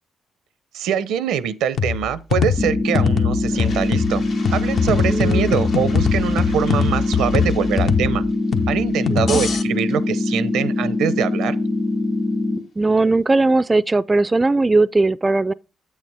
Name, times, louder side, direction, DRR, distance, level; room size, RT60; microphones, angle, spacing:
voice 1, 0.7-4.2 4.5-8.2 8.7-11.6, right 9 dB, 85° right, 0.6 m, -23 dB
sound 1, 1.8-9.6, left 6 dB, 65° left, 0.9 m, -22 dB
sound 2, 2.6-12.6, left 2 dB, 40° left, 1.4 m, -23 dB
Toilet flush, 3.4-11.3, left 3 dB, 85° left, 2.1 m, -43 dB
voice 2, 5.1-5.6 9.1-9.4 12.8-15.5, right 3 dB, 25° right, 0.3 m, -18 dB
8.3 x 6.5 x 3.4 m
supercardioid pair, 65°, 0 cm